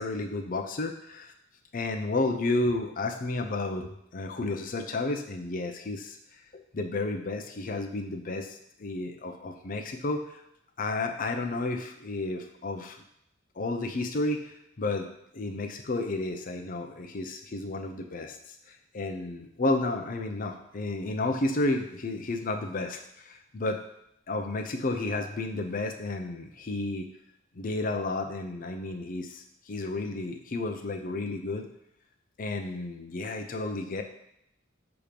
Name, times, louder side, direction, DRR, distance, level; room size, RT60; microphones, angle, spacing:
voice 1, 0.0-1.3 1.7-6.2 6.7-10.2 10.8-13.0 13.6-15.1 15.3-18.4 18.9-23.8 24.3-27.1 27.6-31.7 32.4-34.0, left 2 dB, 45° left, 5 dB, 0.5 m, -31 dB
6.5 x 2.9 x 5.1 m, 0.77 s
head